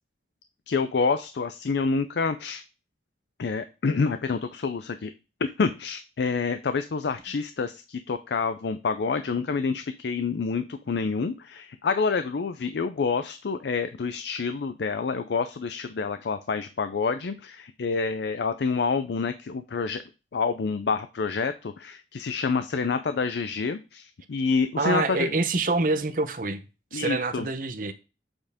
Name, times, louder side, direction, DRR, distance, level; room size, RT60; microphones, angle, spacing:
voice 1, 0.7-2.6 3.4-5.1 5.4-20.0 20.3-25.3 26.9-27.5, left 4 dB, 75° left, 0.4 m, -28 dB
voice 2, 24.8-26.6 26.9-27.9, right 3 dB, 50° right, 0.7 m, -26 dB
7.7 x 4.4 x 3.5 m
head